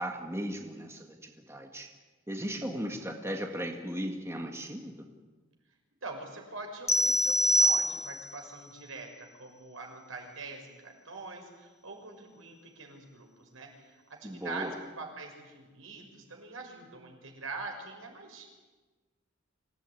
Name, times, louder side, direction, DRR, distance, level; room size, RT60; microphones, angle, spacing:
voice 1, 0.0-1.9 2.3-5.1 14.2-14.7, equal, 15° right, 3 dB, 1.9 m, -37 dB
voice 2, 2.6-3.0 6.0-18.5, right 3 dB, 80° right, 2 dB, 6.4 m, -44 dB
sound 1, 6.9-8.4, equal, 15° left, 0.7 m, -25 dB
25.5 x 17.0 x 9.9 m, 1.3 s
head